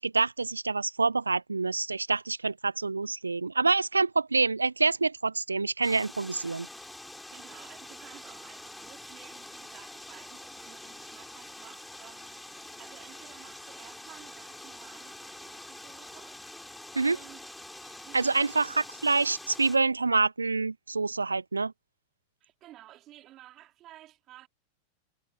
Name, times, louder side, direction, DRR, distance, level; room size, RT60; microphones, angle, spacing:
voice 1, 0.0-6.7 17.0-17.2 18.1-18.7 19.0-21.7, right 3 dB, 80° right, 0.4 m, -27 dB
sound 1, 5.8-19.8, left 1 dB, 5° left, 4.5 m, -46 dB
voice 2, 7.3-17.5 18.0-18.8 22.4-24.5, right 14 dB, 35° right, 3.5 m, -53 dB
figure-of-eight pair, 90°, 0 cm